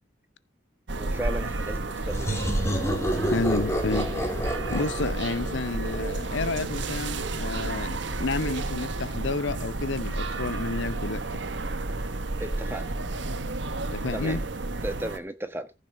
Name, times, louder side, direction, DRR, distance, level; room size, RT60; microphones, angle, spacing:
voice 1, 0.9-2.4 12.4-13.0 14.1-14.4 14.8-15.7, right 1 dB, 10° right, 1.4 m, -35 dB
sound 1, 0.9-15.2, right 2 dB, 65° right, 1.3 m, -31 dB
sound 2, 2.1-6.6, equal, 15° left, 2.3 m, -30 dB
voice 2, 3.3-11.2 13.9-14.4, left 3 dB, 70° left, 0.7 m, -30 dB
14.5 x 6.7 x 4.8 m
head